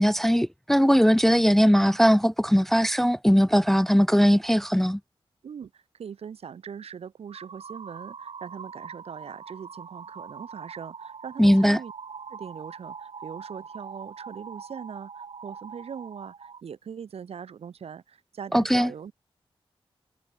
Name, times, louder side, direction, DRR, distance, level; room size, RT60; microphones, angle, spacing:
voice 1, 0.0-5.0 11.4-11.8 18.5-18.9, equal, 5° left, 0.4 m, -20 dB
voice 2, 5.4-11.9 12.3-19.1, right 7 dB, 90° right, 5.8 m, -41 dB
sound 1, 7.3-16.6, right 6 dB, 65° right, 5.4 m, -43 dB
wide cardioid pair, 105°, 10 cm